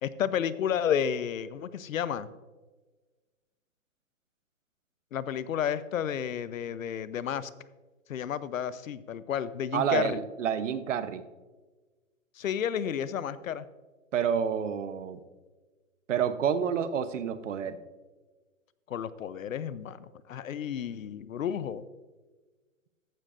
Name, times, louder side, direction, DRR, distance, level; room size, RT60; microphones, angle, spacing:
voice 1, 0.0-2.3 5.1-7.5 8.1-10.2 12.4-13.6 18.9-21.8, left 9 dB, 75° left, 16 dB, 0.7 m, -31 dB
voice 2, 9.7-11.2 14.1-15.2 16.1-17.8, right 8 dB, 60° right, 12 dB, 0.9 m, -29 dB
14.0 x 10.0 x 2.5 m, 1.3 s
hypercardioid pair, 160°, 41 cm